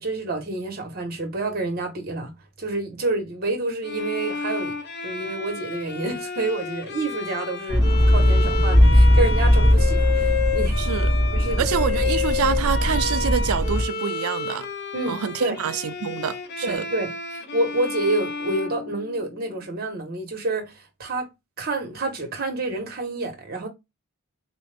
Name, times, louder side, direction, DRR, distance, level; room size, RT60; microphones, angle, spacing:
voice 1, 0.0-2.3 2.6-4.8 5.0-10.8 11.3-11.7 12.4-12.5 14.9-15.6 16.6-20.7 21.0-21.3 21.6-23.7, right 2 dB, 45° right, 1.1 m, -28 dB
Bowed string instrument, 3.8-19.6, left 5 dB, 50° left, 0.7 m, -31 dB
sound 1, 7.7-13.8, left 1 dB, 20° right, 1.0 m, -19 dB
voice 2, 10.8-11.1 11.6-14.7 15.1-16.9, right 8 dB, 80° right, 0.4 m, -27 dB
4.0 x 2.5 x 3.3 m
head